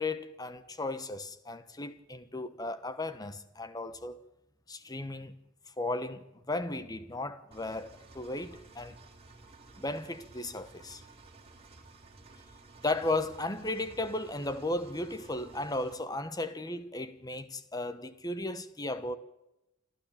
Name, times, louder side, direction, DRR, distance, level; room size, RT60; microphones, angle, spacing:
voice 1, 0.0-4.2 4.7-5.3 5.8-9.0 9.8-11.0 12.8-19.2, left 2 dB, 20° left, 1.1 m, -35 dB
Engine, 7.5-15.9, right 3 dB, 30° right, 3.3 m, -54 dB
28.5 x 12.5 x 8.7 m
head